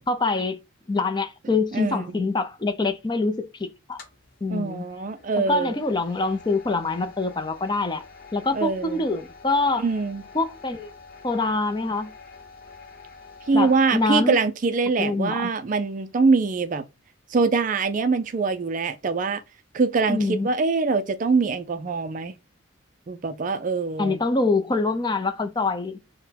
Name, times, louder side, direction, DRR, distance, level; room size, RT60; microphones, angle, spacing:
voice 1, 0.1-0.6 0.9-4.0 4.4-4.8 5.5-8.0 8.3-9.8 10.3-10.9 11.2-12.1 13.5-14.4 15.0-15.5 20.1-20.5 24.0-26.0, left 3 dB, 20° left, 0.5 m, -25 dB
voice 2, 1.7-2.1 4.5-5.7 8.5-9.0 9.8-10.2 13.5-16.8 17.3-19.4 19.7-22.3 23.1-24.2, right 4 dB, 40° right, 0.3 m, -23 dB
sound 1, 3.9-14.1, left 4 dB, 45° left, 0.9 m, -47 dB
4.3 x 2.1 x 4.0 m
head